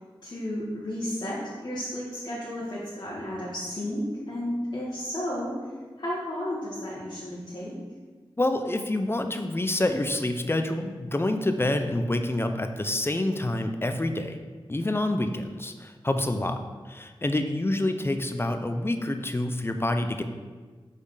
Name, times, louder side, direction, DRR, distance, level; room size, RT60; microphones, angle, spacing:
voice 1, 0.2-5.6 6.0-7.8, left 1 dB, 50° left, -8 dB, 1.5 m, -33 dB
voice 2, 8.4-14.4 14.7-16.6 16.9-20.2, left 1 dB, 25° left, 7 dB, 0.6 m, -27 dB
5.4 x 4.3 x 5.0 m, 1.5 s
cardioid pair, 40°, 10 cm